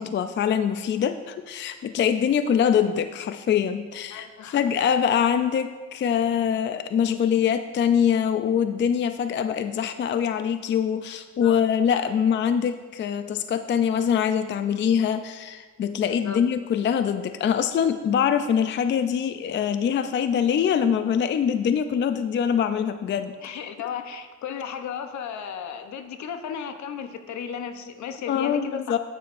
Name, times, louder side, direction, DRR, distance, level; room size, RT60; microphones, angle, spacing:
voice 1, 0.0-23.3 28.3-29.0, left 8 dB, 40° left, 9 dB, 0.4 m, -24 dB
voice 2, 4.1-4.7 11.4-11.6 16.2-16.4 23.4-28.9, left 7 dB, 70° left, 8 dB, 0.8 m, -35 dB
9.4 x 8.9 x 2.5 m, 1.4 s
cardioid pair, 90°, 30 cm